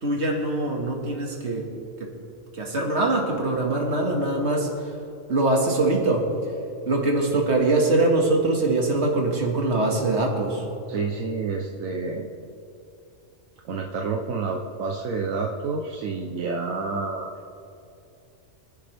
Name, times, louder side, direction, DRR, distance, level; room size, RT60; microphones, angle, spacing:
voice 1, 0.0-1.7 2.0-2.1 2.5-4.9 5.3-6.3 6.9-10.6, right 2 dB, 55° right, 0 dB, 2.2 m, -23 dB
voice 2, 10.9-12.3 13.6-17.3, right 4 dB, 80° right, 1 dB, 1.2 m, -29 dB
24.5 x 10.5 x 3.4 m, 2.7 s
omnidirectional pair, 1.4 m